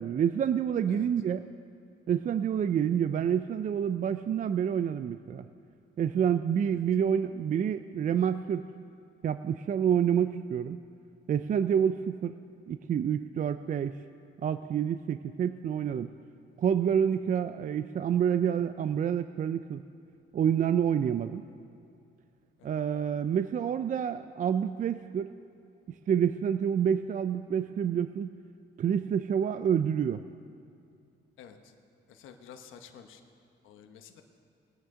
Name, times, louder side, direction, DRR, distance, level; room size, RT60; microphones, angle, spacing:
voice 1, 0.0-1.4 2.1-5.5 6.0-8.7 9.2-10.8 11.3-12.4 12.7-14.0 14.4-16.1 16.6-19.8 20.3-21.4 22.6-25.3 26.1-28.3 28.8-30.2, right 8 dB, 40° right, 12 dB, 0.4 m, -28 dB
voice 2, 31.4-31.7 32.1-33.2 33.6-34.2, left 8 dB, 85° left, 6 dB, 1.0 m, -50 dB
21.0 x 9.7 x 3.7 m, 2.5 s
cardioid pair, 90°, 20 cm